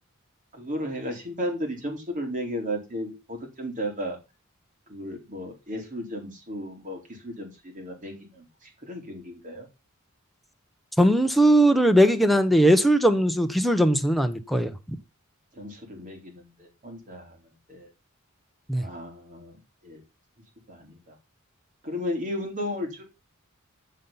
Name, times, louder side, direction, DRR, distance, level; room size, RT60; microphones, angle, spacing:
voice 1, 0.5-4.2 4.9-9.7 15.6-17.4 17.7-17.9 18.8-19.6 19.8-20.0 20.7-21.1 21.8-23.1, equal, 40° right, 4.1 m, -34 dB
voice 2, 11.0-14.8 18.7-18.9, right 1 dB, ahead, 1.0 m, -19 dB
14.5 x 5.7 x 5.7 m
head